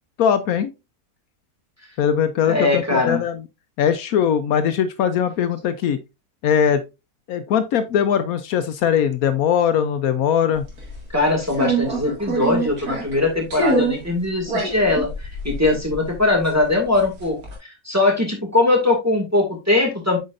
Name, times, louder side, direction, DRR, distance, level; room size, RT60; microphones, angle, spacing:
voice 1, 0.2-0.7 2.0-3.4 3.8-6.0 6.4-6.8 7.3-10.6, left 8 dB, 75° left, 1.1 m, -20 dB
voice 2, 2.5-3.2 11.1-17.4 17.9-20.2, left 2 dB, 10° right, 1.9 m, -20 dB
sound 1, 10.6-11.0 11.5-13.2 13.5-14.0 14.4-16.7 17.0-17.5, right 2 dB, 85° right, 2.6 m, -25 dB
7.9 x 5.3 x 2.5 m
omnidirectional pair, 1.6 m